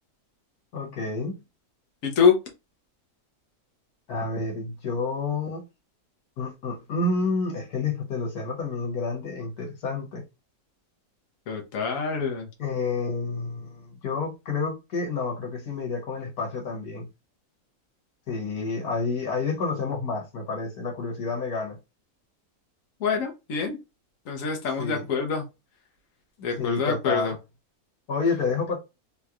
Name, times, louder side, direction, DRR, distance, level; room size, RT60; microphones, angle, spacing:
voice 1, 0.7-1.4 4.1-5.6 6.4-10.2 12.6-17.1 18.3-21.8 24.8-25.1 26.6-27.3 28.1-28.8, left 4 dB, 85° left, 1.7 m, -29 dB
voice 2, 2.0-2.4 11.5-12.5 23.0-23.8 24.3-25.4 26.4-27.3, left 5 dB, 65° left, 1.2 m, -25 dB
3.3 x 3.0 x 2.4 m
omnidirectional pair, 1.6 m